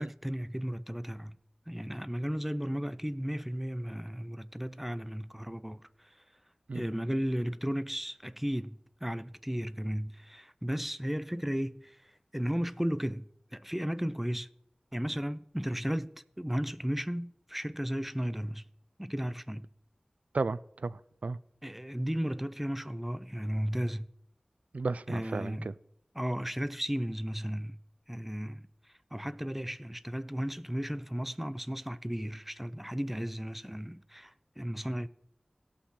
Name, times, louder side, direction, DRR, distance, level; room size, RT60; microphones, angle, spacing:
voice 1, 0.0-1.4 1.7-6.1 6.7-14.5 14.9-18.6 19.0-19.7 21.6-24.1 25.1-25.7 26.1-27.8 28.1-28.7 29.1-35.1, equal, 5° right, 0.4 m, -34 dB
voice 2, 20.3-21.4 24.7-25.7, right 3 dB, 80° right, 0.3 m, -34 dB
17.0 x 6.0 x 4.3 m
wide cardioid pair, 45°, 2 cm